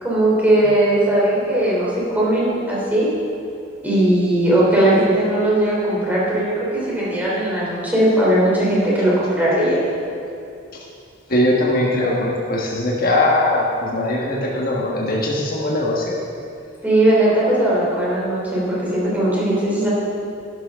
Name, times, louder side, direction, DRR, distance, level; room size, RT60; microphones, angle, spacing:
voice 1, 0.0-3.1 3.8-9.8 16.8-19.9, right 1 dB, 10° right, -7 dB, 3.2 m, -18 dB
voice 2, 11.3-16.1, left 1 dB, 45° left, -4 dB, 1.4 m, -20 dB
12.0 x 12.0 x 3.7 m, 2.6 s
head